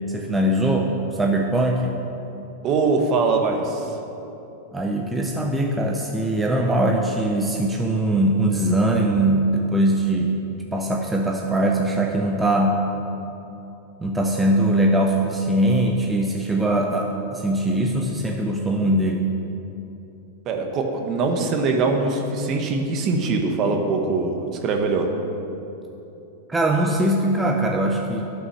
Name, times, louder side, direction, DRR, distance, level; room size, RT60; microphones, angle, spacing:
voice 1, 0.1-2.0 4.7-10.4 10.7-12.9 14.0-19.3 26.5-28.3, right 1 dB, 10° right, 0 dB, 0.7 m, -21 dB
voice 2, 2.6-3.9 20.4-25.1, right 3 dB, 40° right, 3 dB, 1.3 m, -22 dB
11.0 x 6.2 x 6.3 m, 2.9 s
hypercardioid pair, 125°, 0 cm